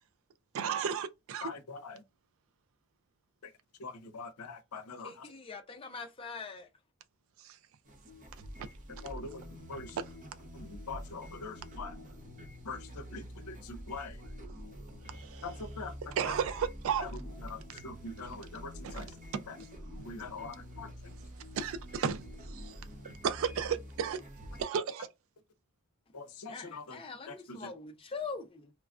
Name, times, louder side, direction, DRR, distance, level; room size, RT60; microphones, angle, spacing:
voice 1, 0.5-1.5 7.4-7.6 15.1-15.5 16.1-17.1 18.8-19.1 19.3-19.4 21.6-22.2 22.5-22.7 23.2-24.2 24.6-25.1, right 7 dB, 65° right, 0.3 m, -33 dB
voice 2, 1.4-2.0 3.8-5.2 9.0-10.0 10.5-11.9 12.7-14.2 15.4-15.9 17.0-17.1 17.4-19.1 19.5-19.6 20.0-20.9 26.1-27.0 27.3-27.7, left 4 dB, 80° left, 0.6 m, -43 dB
voice 3, 5.0-6.7 26.5-28.7, left 4 dB, 25° left, 0.4 m, -43 dB
sound 1, 7.8-24.6, equal, 35° right, 0.7 m, -47 dB
3.0 x 2.3 x 2.4 m
head